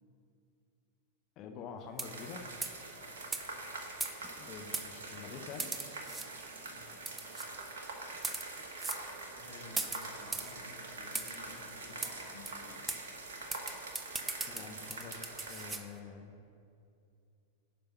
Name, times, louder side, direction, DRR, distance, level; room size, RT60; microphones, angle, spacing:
voice 1, 1.4-2.4 4.4-5.7 14.5-15.2 15.5-16.3, left 6 dB, 35° left, 5 dB, 0.8 m, -46 dB
sound 1, 1.9-2.3 2.6-2.8 3.3-3.4 4.0-4.4 4.7-4.9 5.6-6.3 7.1-7.5 8.1-8.5 8.8-9.0 9.8-10.5 11.1-11.4 12.0-12.1 12.5-12.6 12.9-13.0 13.5-15.8, right 3 dB, 15° right, 0.6 m, -38 dB
sound 2, 2.0-15.8, right 3 dB, 65° right, 1.2 m, -45 dB
voice 2, 6.6-7.0 9.2-12.9, left 2 dB, 65° left, -6 dB, 2.5 m, -53 dB
9.9 x 5.4 x 5.8 m, 2.4 s
figure-of-eight pair, 90°, 0 cm